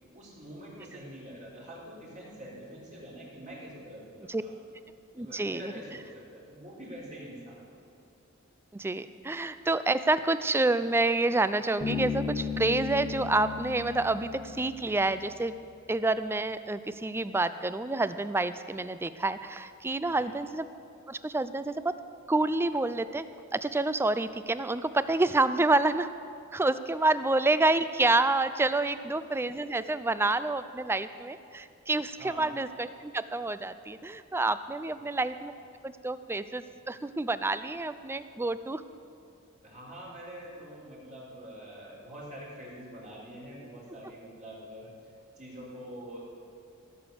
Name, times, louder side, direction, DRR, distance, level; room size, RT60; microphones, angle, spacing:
voice 1, 0.0-4.6 5.2-7.7 20.0-20.3 32.2-32.5 34.8-35.0 39.6-46.2, equal, 35° right, -5 dB, 3.7 m, -45 dB
voice 2, 5.2-5.7 8.7-15.5 15.9-20.7 21.1-21.7 22.3-23.2 23.5-26.1 26.5-35.5 35.8-38.8, right 2 dB, 10° right, 13 dB, 0.3 m, -28 dB
Bass guitar, 11.8-15.5, left 6 dB, 25° left, 1.2 m, -36 dB
16.5 x 7.1 x 6.7 m, 2.5 s
head